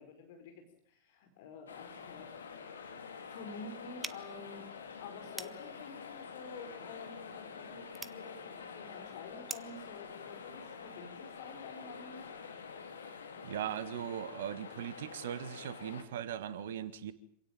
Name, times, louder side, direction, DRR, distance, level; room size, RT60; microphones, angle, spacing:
voice 1, 0.0-2.3 3.3-4.7 5.0-12.4, left 4 dB, 50° left, 5 dB, 4.7 m, -49 dB
sound 1, 1.7-16.0, left 6 dB, 70° left, 3.2 m, -47 dB
sound 2, 4.0-9.9, right 3 dB, 10° right, 1.2 m, -49 dB
voice 2, 13.4-17.1, right 9 dB, 60° right, 14 dB, 1.6 m, -39 dB
26.5 x 17.5 x 9.2 m, 0.66 s
figure-of-eight pair, 90°, 0 cm